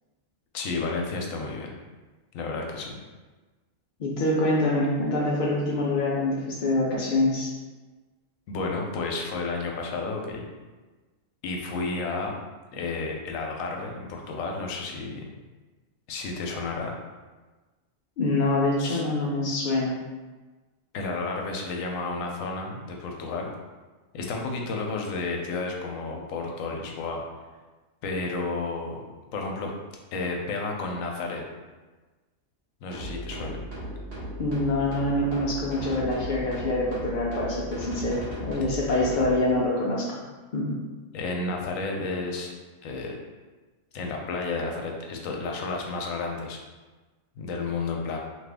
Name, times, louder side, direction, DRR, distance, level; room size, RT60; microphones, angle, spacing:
voice 1, 0.5-1.7 2.3-2.9 8.5-10.4 11.4-12.3 12.7-15.2 16.1-16.9 18.8-19.0 20.9-23.5 24.1-27.2 28.0-29.0 29.3-29.7 30.1-31.4 32.8-33.6 41.1-42.5 42.8-43.2 43.9-46.6 47.4-48.2, left 3 dB, 85° left, 1 dB, 1.0 m, -31 dB
voice 2, 4.0-7.5 18.2-20.0 34.4-40.2 40.5-40.8, left 2 dB, 65° left, -4 dB, 0.4 m, -25 dB
sound 1, 32.9-39.3, equal, 60° right, 1.1 m, -36 dB
2.8 x 2.5 x 3.3 m, 1.3 s
omnidirectional pair, 1.3 m